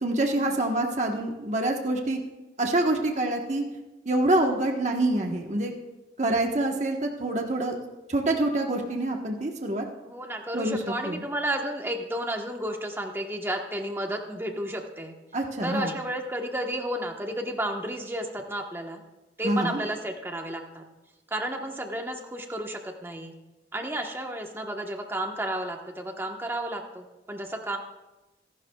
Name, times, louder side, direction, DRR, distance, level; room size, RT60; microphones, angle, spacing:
voice 1, 0.0-2.2 2.6-3.6 4.0-5.7 6.2-7.8 8.1-9.8 10.5-10.8 11.0-11.2 15.3-15.9 19.4-19.8, right 2 dB, 40° right, 2 dB, 1.2 m, -26 dB
voice 2, 10.0-15.1 15.6-19.0 19.4-20.8 21.3-23.3 23.7-27.8, right 1 dB, 15° right, 3 dB, 1.1 m, -32 dB
25.5 x 12.0 x 2.3 m, 1.1 s
head